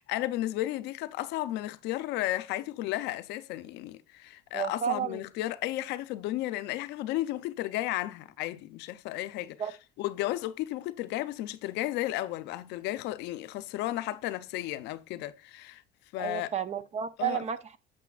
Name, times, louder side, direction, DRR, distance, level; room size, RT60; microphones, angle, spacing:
voice 1, 0.0-9.6 10.0-15.8 16.1-16.5 17.2-17.4, left 15 dB, 90° left, 0.5 m, -33 dB
voice 2, 4.5-5.2 9.6-9.7 16.2-17.8, right 9 dB, 40° right, 0.7 m, -32 dB
8.2 x 6.6 x 2.4 m
cardioid pair, 110°, 17 cm